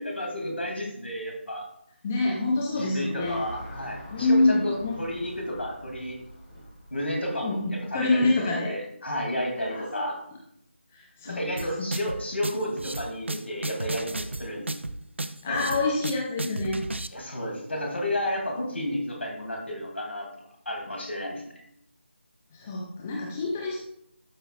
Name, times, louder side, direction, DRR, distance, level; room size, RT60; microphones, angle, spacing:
voice 1, 0.0-1.6 2.8-6.2 6.9-10.2 11.2-14.7 15.5-15.9 17.1-20.3 20.7-21.4, left 1 dB, 65° left, 0 dB, 2.4 m, -32 dB
voice 2, 2.0-3.4 4.1-5.0 7.4-8.7 9.7-10.1 10.9-11.7 15.4-16.9 22.5-23.8, left 2 dB, 10° left, -2 dB, 0.3 m, -26 dB
Car passing by / Traffic noise roadway noise, 3.2-7.8, equal, 30° left, 3.0 m, -44 dB
sound 1, 11.6-17.1, right 2 dB, 65° right, 0.5 m, -33 dB
12.0 x 5.6 x 2.3 m, 0.73 s
figure-of-eight pair, 160°, 7 cm